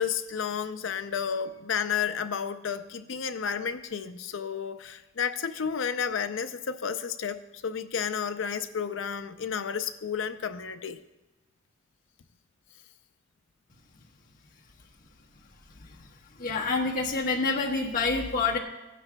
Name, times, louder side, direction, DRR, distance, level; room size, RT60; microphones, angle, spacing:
voice 1, 0.0-11.0, left 7 dB, 70° left, 10 dB, 0.5 m, -31 dB
voice 2, 16.4-18.6, left 4 dB, 45° left, -3 dB, 1.3 m, -27 dB
15.5 x 10.0 x 2.3 m, 1.1 s
head